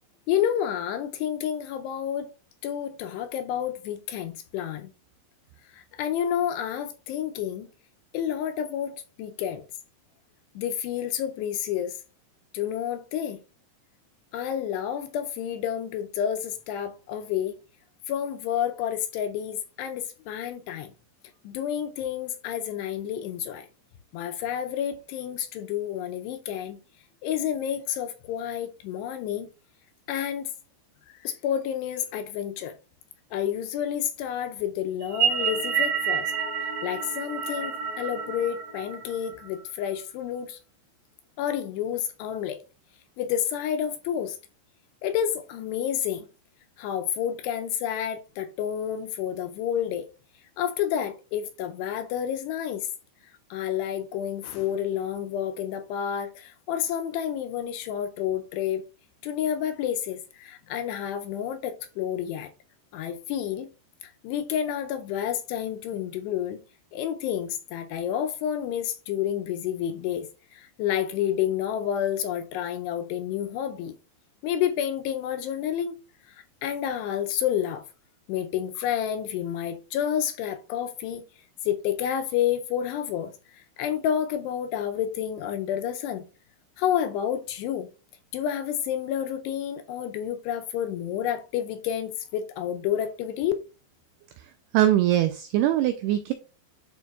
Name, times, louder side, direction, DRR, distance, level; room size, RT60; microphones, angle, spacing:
voice 1, 0.3-2.3 2.6-4.9 5.7-7.7 8.1-9.6 10.6-12.0 12.5-13.4 14.3-17.5 18.1-20.9 21.4-23.7 24.1-26.8 27.2-29.5 30.1-30.5 31.1-32.7 33.3-36.3 36.6-40.6 41.4-42.6 43.2-44.4 45.0-46.3 46.8-50.1 50.6-52.9 53.5-58.8 59.2-62.5 62.9-63.7 64.0-66.6 66.9-73.9 74.4-76.0 76.3-76.4 76.6-77.8 78.3-81.2 81.6-86.2 86.8-87.9 88.3-93.5, left 9 dB, 80° left, 2.5 m, -29 dB
sound 1, 35.0-39.5, right 7 dB, 60° right, 2.6 m, -29 dB
voice 2, 94.7-96.3, right 13 dB, 90° right, 2.3 m, -22 dB
11.5 x 4.5 x 2.3 m
omnidirectional pair, 5.2 m